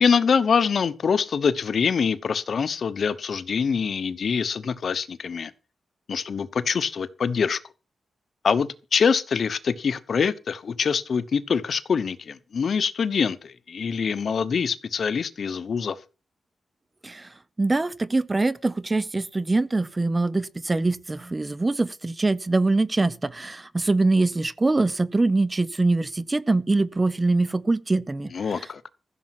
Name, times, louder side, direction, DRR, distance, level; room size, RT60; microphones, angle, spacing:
voice 1, 0.0-5.5 6.1-7.6 8.4-16.0 28.3-28.8, left 6 dB, 50° left, 1.0 m, -24 dB
voice 2, 17.6-28.3, right 2 dB, 20° right, 0.6 m, -23 dB
15.0 x 7.1 x 6.0 m
wide cardioid pair, 160°, 0 cm